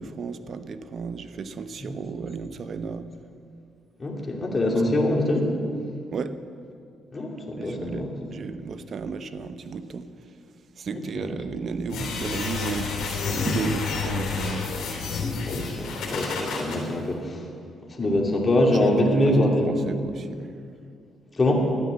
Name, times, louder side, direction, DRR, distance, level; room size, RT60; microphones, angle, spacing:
voice 1, 0.0-3.1 6.1-6.4 7.6-10.1 10.8-14.6 18.0-18.2 18.7-18.8 19.7-20.5, right 5 dB, 55° right, 11 dB, 0.8 m, -33 dB
voice 2, 4.0-5.5 7.1-8.1 10.9-11.4 15.4-17.5 17.9-19.7 21.3-21.7, left 1 dB, 30° left, -1 dB, 2.6 m, -24 dB
sound 1, 11.9-16.8, left 4 dB, 85° left, 3.1 m, -29 dB
13.0 x 9.6 x 7.7 m, 2.3 s
cardioid pair, 90°, 0 cm